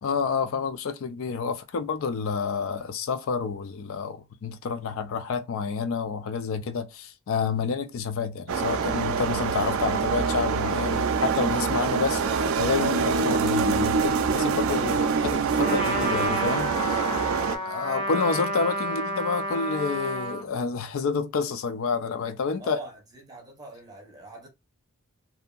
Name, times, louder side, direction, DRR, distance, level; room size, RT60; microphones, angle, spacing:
voice 1, 0.0-17.0 17.7-22.8, left 5 dB, 70° left, 0.4 m, -29 dB
sound 1, 8.5-17.6, right 5 dB, 75° right, 0.4 m, -25 dB
Trumpet, 15.5-20.5, equal, 25° left, 0.6 m, -30 dB
voice 2, 17.4-18.0 22.6-24.5, right 2 dB, 20° right, 0.8 m, -44 dB
2.7 x 2.6 x 2.2 m
head